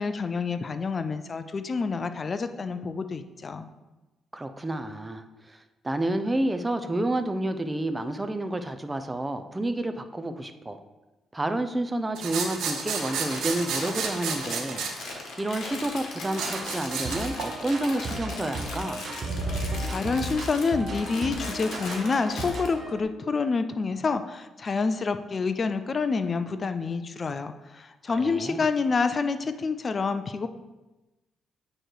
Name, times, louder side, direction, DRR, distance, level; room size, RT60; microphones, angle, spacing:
voice 1, 0.0-3.7 19.9-30.5, left 4 dB, 35° left, 10 dB, 0.4 m, -28 dB
voice 2, 4.3-10.8 11.3-19.1 28.2-28.6, right 1 dB, 15° right, 8 dB, 0.5 m, -30 dB
sound 1, 12.2-14.9 16.3-17.5, right 6 dB, 80° right, 0.9 m, -32 dB
Crumpling crinkling, 12.6-22.7, left 3 dB, 65° left, 1.5 m, -39 dB
sound 2, 16.2-23.0, right 2 dB, 50° right, 0.9 m, -35 dB
8.8 x 3.1 x 4.5 m, 1.1 s
cardioid pair, 90°, 0 cm